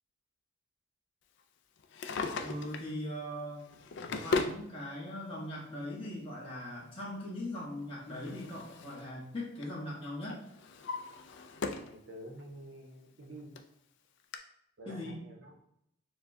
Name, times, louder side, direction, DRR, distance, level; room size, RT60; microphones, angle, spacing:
Drawer open or close, 1.8-2.9 3.6-4.6 5.7-5.8 7.6-9.1 9.4-9.8 10.3-12.0 12.4-12.5 13.2-13.3 13.5-13.6 14.3-14.4, left 3 dB, 55° left, 0.3 m, -37 dB
voice 1, 2.4-3.7 4.1-10.4 14.9-15.2, left 1 dB, 25° left, -6 dB, 1.0 m, -40 dB
voice 2, 11.9-13.5 14.8-15.5, right 1 dB, 60° right, 2 dB, 0.7 m, -48 dB
6.5 x 2.2 x 2.6 m, 0.77 s
head